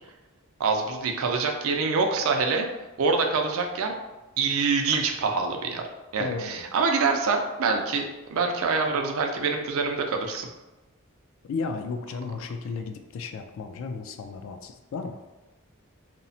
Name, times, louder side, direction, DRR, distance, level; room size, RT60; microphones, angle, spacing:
voice 1, 0.6-2.7 3.0-3.9 4.4-5.8 6.1-8.0 8.3-10.5, right 4 dB, 70° right, 4 dB, 0.4 m, -25 dB
voice 2, 6.2-6.7 11.5-15.2, left 4 dB, 65° left, 7 dB, 0.3 m, -34 dB
2.9 x 2.0 x 2.6 m, 1.1 s
head